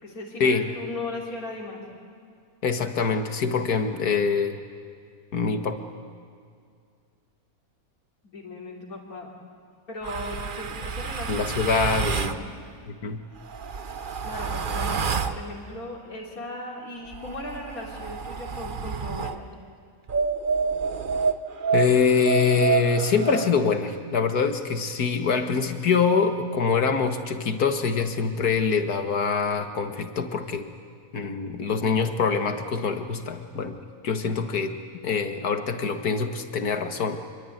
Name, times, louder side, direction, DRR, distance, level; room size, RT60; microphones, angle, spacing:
voice 1, 0.0-1.8 8.2-9.3 9.9-11.5 12.1-12.6 14.2-19.4, left 2 dB, 70° left, -3 dB, 4.0 m, -37 dB
voice 2, 2.6-4.6 5.3-5.8 11.3-12.4 12.9-13.2 21.7-30.7 31.1-33.8 34.0-34.8 35.0-37.2, left 5 dB, 85° left, 7 dB, 2.2 m, -24 dB
sound 1, 10.0-12.4 13.4-15.4 17.0-19.4 20.1-23.5, right 5 dB, 40° right, 1.0 m, -28 dB
26.5 x 23.5 x 9.4 m, 2.2 s
omnidirectional pair, 1.6 m